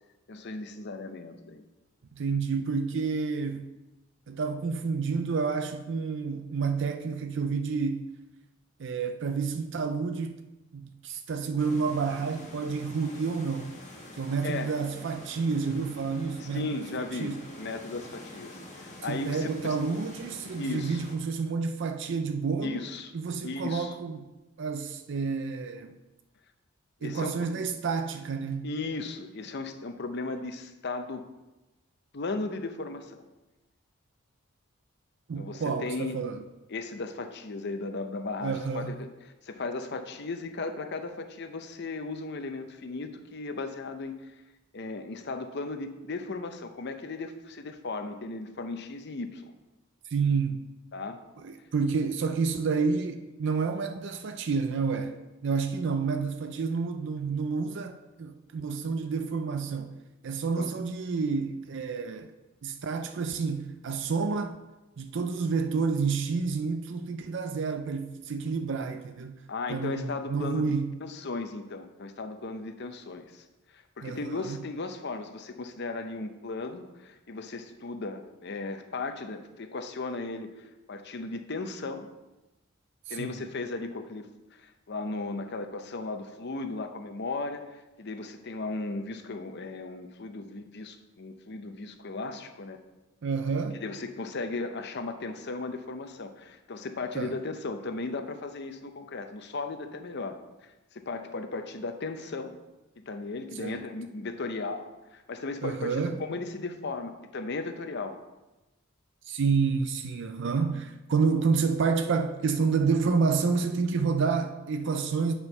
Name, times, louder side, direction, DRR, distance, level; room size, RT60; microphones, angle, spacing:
voice 1, 0.3-1.6 14.4-14.7 16.4-19.5 20.6-21.0 22.6-23.1 23.4-23.9 27.0-27.3 28.6-31.2 32.1-33.3 35.4-36.2 36.7-39.1 39.4-44.3 44.7-49.5 50.9-51.2 60.6-60.7 69.5-70.7 71.0-73.4 73.7-82.1 83.1-92.8 93.7-100.3 100.9-102.6 103.0-108.2, left 3 dB, 55° left, 0.7 m, -36 dB
voice 2, 2.1-3.7 4.3-8.1 8.8-10.4 10.7-13.7 14.2-17.4 19.1-22.9 23.1-24.3 24.6-26.0 27.0-28.7 35.3-36.4 38.4-39.0 50.1-50.7 51.4-55.2 55.4-60.0 60.2-62.3 62.6-64.6 65.0-69.4 69.7-70.9 74.0-74.6 83.1-83.4 93.2-93.8 97.1-97.3 103.5-103.9 105.6-106.2 109.2-115.3, right 5 dB, 60° right, 0.5 m, -29 dB
sound 1, 11.6-21.2, left 1 dB, 35° left, 1.5 m, -46 dB
8.5 x 4.5 x 5.3 m
head